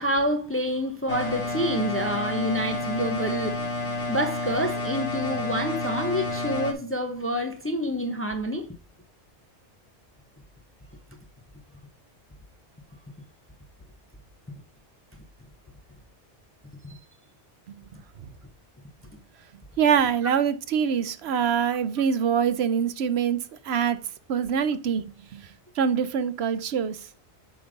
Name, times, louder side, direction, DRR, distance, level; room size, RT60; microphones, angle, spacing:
voice 1, 0.0-3.6 4.1-8.7 16.8-17.0, equal, 15° left, 0.5 m, -27 dB
sound 1, 1.1-6.7, left 2 dB, 85° left, 1.4 m, -30 dB
voice 2, 19.8-23.4 23.7-24.0 24.3-25.0 25.3-25.4 25.8-27.0, right 7 dB, 70° right, 0.9 m, -24 dB
8.0 x 3.3 x 5.1 m
omnidirectional pair, 1.2 m